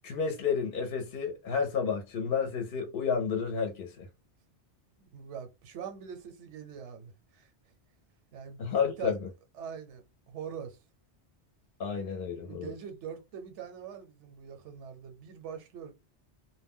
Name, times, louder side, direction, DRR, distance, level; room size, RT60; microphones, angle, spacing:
voice 1, 0.0-4.1 8.6-9.2 11.8-12.7, left 6 dB, 60° left, 0.7 m, -31 dB
voice 2, 5.0-7.5 8.3-9.2 9.6-10.8 12.4-15.9, right 7 dB, 85° right, 1.0 m, -43 dB
2.1 x 2.1 x 3.5 m
omnidirectional pair, 1.2 m